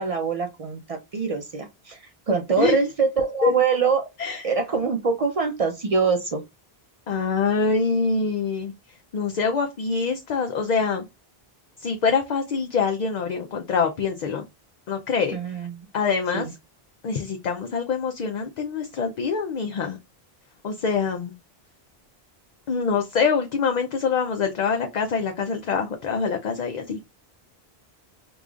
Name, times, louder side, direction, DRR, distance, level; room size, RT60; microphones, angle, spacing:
voice 1, 0.0-2.0 2.3-4.1 4.4-6.4 15.3-15.9 16.3-16.5, right 5 dB, 50° right, 0.5 m, -24 dB
voice 2, 2.6-2.9 3.4-3.5 4.2-4.5 7.1-8.7 9.1-11.0 11.8-14.5 14.9-15.6 15.9-16.5 17.0-20.0 20.6-21.3 22.7-27.0, left 5 dB, 55° left, 0.5 m, -25 dB
4.8 x 2.3 x 2.4 m
omnidirectional pair, 1.1 m